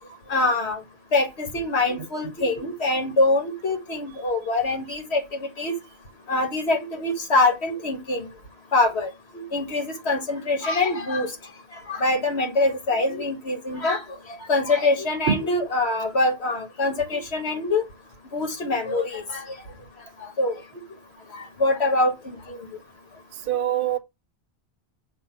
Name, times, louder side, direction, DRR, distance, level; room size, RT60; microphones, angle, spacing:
voice 1, 0.3-0.8 1.1-5.8 6.3-8.3 8.7-11.3 11.9-14.0 14.3-17.8 18.3-19.4 20.2-20.6 21.3-22.7, left 2 dB, 85° left, 1.8 m, -24 dB
voice 2, 23.5-24.0, right 9 dB, 60° right, 0.8 m, -23 dB
7.2 x 2.6 x 5.7 m
omnidirectional pair, 1.1 m